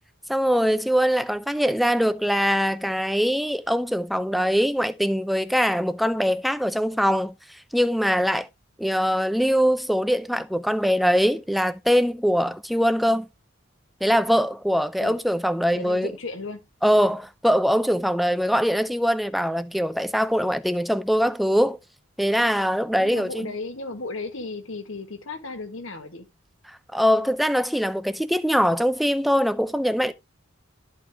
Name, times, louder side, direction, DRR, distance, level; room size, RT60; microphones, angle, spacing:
voice 1, 0.3-8.5 8.8-13.3 14.0-16.1 16.8-21.8 22.2-23.5 26.9-30.1, equal, ahead, 0.4 m, -22 dB
voice 2, 15.7-16.7 23.0-26.3, left 3 dB, 75° left, 1.5 m, -35 dB
12.0 x 4.4 x 3.3 m
head